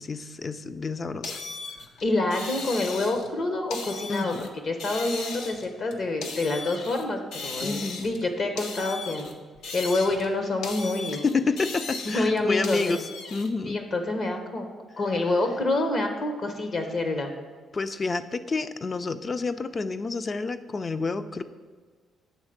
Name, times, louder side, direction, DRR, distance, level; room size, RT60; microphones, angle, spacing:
voice 1, 0.0-1.4 4.1-4.5 7.6-8.1 11.2-13.0 13.3-13.8 17.7-21.4, left 4 dB, 35° left, 12 dB, 0.4 m, -29 dB
sound 1, 1.2-3.3 3.7-4.5 4.8-7.1 7.3-8.3 8.6-10.3 10.6-13.5, left 4 dB, 80° left, 0.8 m, -37 dB
voice 2, 2.0-4.3 4.6-9.3 9.7-11.2 12.0-13.0 13.6-14.7 15.0-17.3, left 2 dB, 55° left, 5 dB, 0.9 m, -27 dB
8.1 x 3.5 x 6.5 m, 1.5 s
cardioid pair, 90°, 0 cm